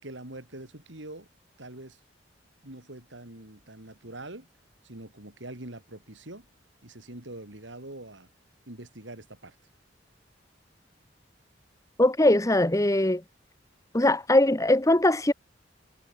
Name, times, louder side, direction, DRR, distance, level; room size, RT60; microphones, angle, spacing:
voice 1, 0.0-1.3 1.6-2.0 2.6-4.5 4.8-6.5 6.8-8.3 8.7-9.6, right 1 dB, 80° right, 4.1 m, -44 dB
voice 2, 12.0-13.2 13.9-15.3, left 1 dB, 15° left, 1.2 m, -21 dB
head